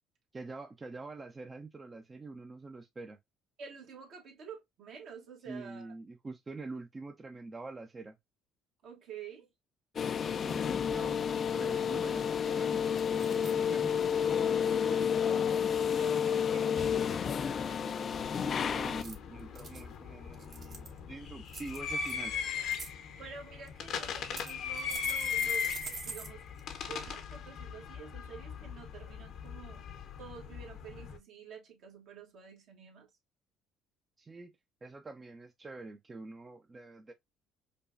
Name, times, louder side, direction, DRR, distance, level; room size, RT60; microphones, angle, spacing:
voice 1, 0.3-3.2 5.5-8.2 10.4-14.5 18.3-22.3 34.2-34.5 34.8-37.1, right 3 dB, 30° right, 0.5 m, -46 dB
voice 2, 3.6-5.9 8.8-9.5 14.6-17.4 17.7-18.1 23.1-25.7 26.0-26.4 26.8-29.9 30.2-33.1, right 6 dB, 65° right, 1.4 m, -49 dB
sound 1, 10.0-19.0, left 7 dB, 45° left, 0.3 m, -30 dB
sound 2, 11.8-11.9 12.2-12.5 13.0-13.5 14.0-14.4 18.8-19.8 20.3-21.0 21.5-22.2 22.5-22.9 23.7-23.8 24.4-26.3 26.6-26.7 27.1-27.2, right 5 dB, 50° right, 1.0 m, -44 dB
sound 3, 18.1-31.2, left 7 dB, 65° left, 0.7 m, -39 dB
5.2 x 2.3 x 2.5 m
supercardioid pair, 70°, 0 cm